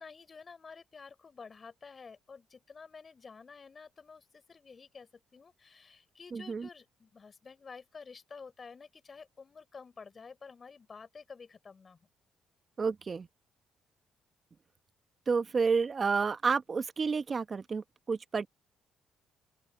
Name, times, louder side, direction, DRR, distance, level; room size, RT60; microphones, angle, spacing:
voice 1, 0.0-12.0, left 5 dB, 40° left, 5.1 m, -51 dB
voice 2, 6.3-6.7 12.8-13.3 15.3-18.5, right 5 dB, 40° right, 1.1 m, -30 dB
open air
supercardioid pair, 60°, 0 cm